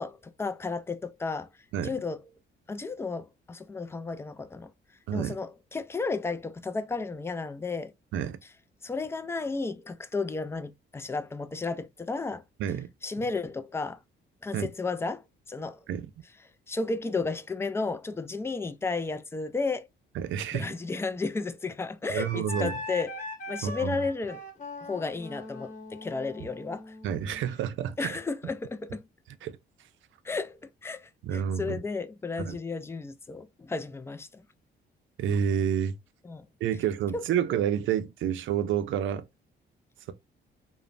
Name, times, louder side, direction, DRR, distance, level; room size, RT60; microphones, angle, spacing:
voice 1, 0.0-1.5 1.8-2.2 2.7-4.7 5.1-7.9 8.8-12.4 13.0-14.0 14.4-15.8 16.7-19.9 20.5-24.4 24.8-26.8 28.0-29.0 30.2-34.4 36.2-36.5 37.1-37.2, left 3 dB, 15° left, 0.3 m, -33 dB
voice 2, 20.1-20.7 22.1-22.8 23.6-24.0 27.0-28.2 29.4-29.6 31.2-31.8 32.4-32.6 35.2-36.0 36.6-39.2, right 9 dB, 75° right, 0.5 m, -29 dB
Wind instrument woodwind instrument, 22.2-27.6, left 2 dB, 40° left, 1.2 m, -41 dB
3.0 x 2.1 x 2.4 m
cardioid pair, 90°, 20 cm